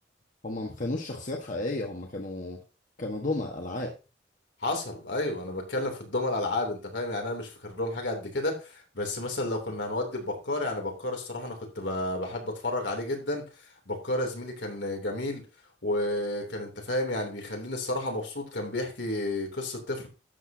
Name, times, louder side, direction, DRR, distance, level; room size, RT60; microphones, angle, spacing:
voice 1, 0.4-2.6 3.0-4.0, left 2 dB, 45° left, 0 dB, 1.5 m, -33 dB
voice 2, 4.6-13.4 13.9-15.4 15.8-20.1, left 1 dB, 75° left, 2 dB, 3.2 m, -31 dB
12.5 x 8.3 x 2.9 m, 0.30 s
head